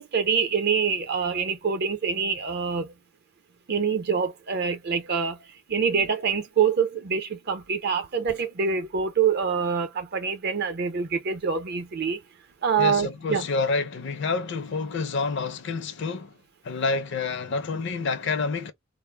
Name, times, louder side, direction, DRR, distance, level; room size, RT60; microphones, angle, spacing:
voice 1, 0.0-2.9 3.7-5.4 5.7-12.2 12.6-13.5, right 6 dB, 50° right, 0.6 m, -25 dB
voice 2, 12.8-16.4 16.6-18.7, left 4 dB, 60° left, 0.5 m, -28 dB
2.0 x 2.0 x 3.2 m
head